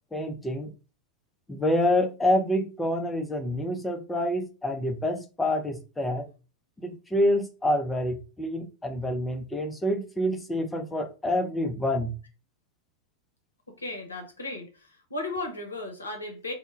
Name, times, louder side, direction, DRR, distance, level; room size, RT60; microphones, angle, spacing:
voice 1, 0.1-0.7 1.5-6.3 6.8-12.1, left 1 dB, 10° left, 0.4 m, -27 dB
voice 2, 13.8-16.5, left 2 dB, 75° left, 0.6 m, -35 dB
2.1 x 2.0 x 3.1 m
figure-of-eight pair, 90°, 0 cm